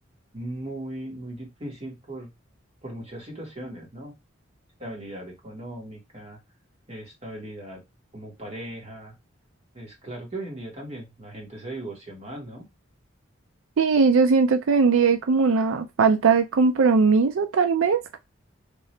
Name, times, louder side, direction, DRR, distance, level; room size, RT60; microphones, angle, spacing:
voice 1, 0.3-2.3 2.8-4.2 4.8-6.4 6.9-7.8 8.1-9.1 9.7-12.7, right 1 dB, 35° right, 1.7 m, -38 dB
voice 2, 13.8-18.2, right 5 dB, 90° right, 0.4 m, -20 dB
3.7 x 2.8 x 3.2 m
head